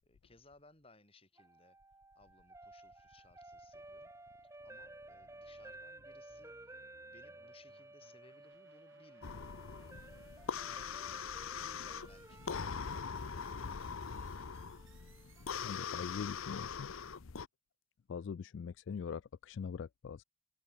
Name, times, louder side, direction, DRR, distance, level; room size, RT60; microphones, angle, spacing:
voice 1, 0.0-1.8 2.1-4.1 4.4-6.8 7.1-9.6 11.6-14.1, left 2 dB, 25° left, 7.8 m, -64 dB
sound 1, 1.4-15.5, right 2 dB, 15° right, 1.2 m, -55 dB
sound 2, 1.8-16.2, right 4 dB, 70° right, 3.6 m, -69 dB
sound 3, 9.2-17.5, left 6 dB, 80° left, 0.7 m, -42 dB
voice 2, 15.6-16.9 18.1-20.2, left 6 dB, 60° left, 0.3 m, -42 dB
head